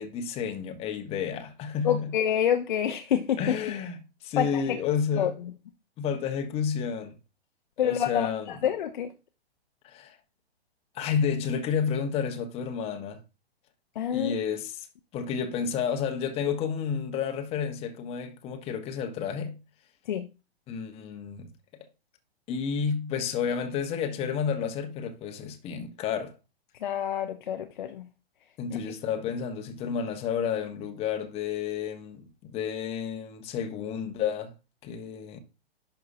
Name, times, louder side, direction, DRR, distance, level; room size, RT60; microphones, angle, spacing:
voice 1, 0.0-2.1 3.4-4.0 4.2-5.3 6.0-7.1 7.8-8.5 9.8-10.2 10.9-13.2 14.1-14.9 15.1-19.5 20.7-21.5 22.5-26.3 28.6-34.5 34.8-35.4, left 7 dB, 20° left, 1.0 m, -31 dB
voice 2, 1.8-3.6 4.4-4.8 5.2-5.5 7.8-9.1 14.0-14.4 20.1-20.3 26.8-28.1 28.7-28.8, left 9 dB, 50° left, 0.8 m, -28 dB
11.0 x 5.6 x 2.6 m
figure-of-eight pair, 115°, 31 cm